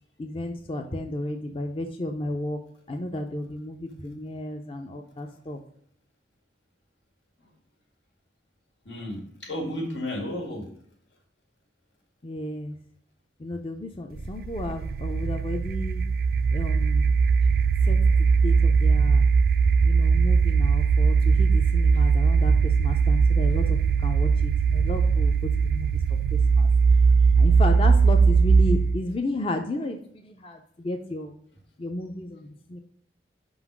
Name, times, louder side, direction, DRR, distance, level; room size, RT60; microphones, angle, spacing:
voice 1, 0.2-2.6 2.9-5.6 12.2-12.8 13.4-16.0 16.5-17.1 17.8-19.3 19.8-25.3 25.6-25.9 26.5-26.7 27.4-31.3 31.8-32.8, left 1 dB, 30° left, 4 dB, 0.5 m, -33 dB
voice 2, 3.8-4.2 8.9-10.7, left 1 dB, 90° left, 2 dB, 1.9 m, -33 dB
sound 1, 14.2-29.0, right 5 dB, 55° right, 0.3 m, -20 dB
5.4 x 3.9 x 5.9 m, 0.66 s
head